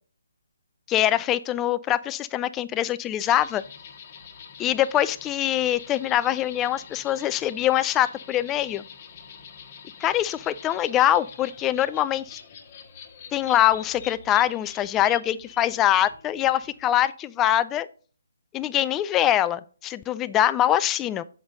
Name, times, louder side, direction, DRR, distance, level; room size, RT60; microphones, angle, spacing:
voice 1, 0.9-3.6 4.6-8.8 10.0-12.4 13.3-17.9 18.5-21.2, left 12 dB, 15° left, 15 dB, 0.3 m, -23 dB
sound 1, 3.2-17.1, left 7 dB, 30° left, 1.3 m, -45 dB
7.7 x 5.2 x 3.8 m, 0.41 s
figure-of-eight pair, 145°, 0 cm